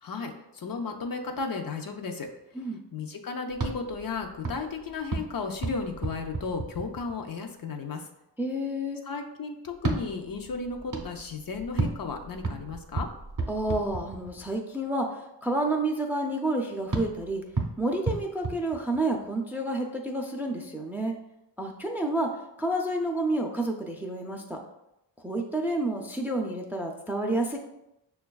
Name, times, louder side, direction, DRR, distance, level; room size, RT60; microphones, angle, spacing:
voice 1, 0.0-2.3 2.9-8.0 9.0-13.1, left 4 dB, 50° left, 4 dB, 0.5 m, -34 dB
sound 1, 3.5-7.3 9.7-14.6 16.9-19.3, right 3 dB, 45° right, 0.6 m, -34 dB
voice 2, 8.4-9.0 13.5-17.4 17.8-21.1 21.6-22.3 22.6-24.6 25.2-27.6, right 1 dB, 5° right, 2 dB, 0.4 m, -29 dB
6.1 x 2.3 x 2.2 m, 0.86 s
wide cardioid pair, 75°, 44 cm